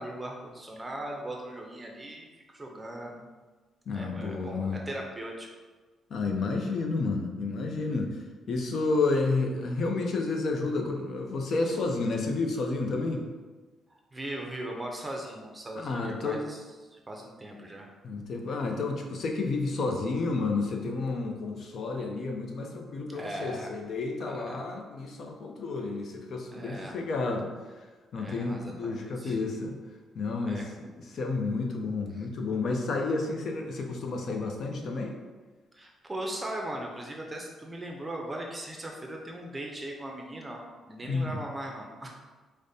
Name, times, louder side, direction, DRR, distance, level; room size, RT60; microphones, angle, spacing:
voice 1, 0.0-3.2 3.9-5.5 11.6-11.7 14.1-16.6 16.9-17.9 23.1-23.7 24.2-24.6 26.5-26.9 28.1-29.4 30.4-30.7 32.1-32.3 35.7-42.1, right 1 dB, 20° right, 0 dB, 0.5 m, -39 dB
voice 2, 3.9-4.8 6.1-8.1 8.5-13.2 15.8-16.4 18.0-27.5 28.1-29.8 30.1-35.2 41.0-41.4, left 3 dB, 60° left, 2 dB, 0.5 m, -30 dB
4.9 x 2.1 x 2.7 m, 1.3 s
cardioid pair, 90°, 0 cm